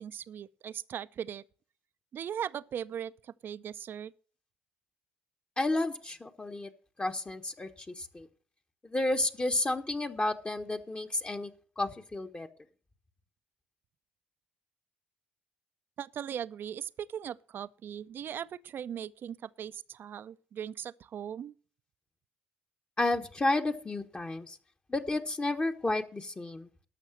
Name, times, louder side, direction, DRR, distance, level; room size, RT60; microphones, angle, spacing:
voice 1, 0.0-1.4 2.1-4.1 16.0-21.6, right 9 dB, 55° right, 0.5 m, -39 dB
voice 2, 5.6-6.7 7.0-8.3 8.8-11.5 11.8-12.5 23.0-24.6 24.9-26.7, left 2 dB, 25° left, 1.3 m, -31 dB
12.5 x 6.5 x 7.6 m
hypercardioid pair, 50°, 4 cm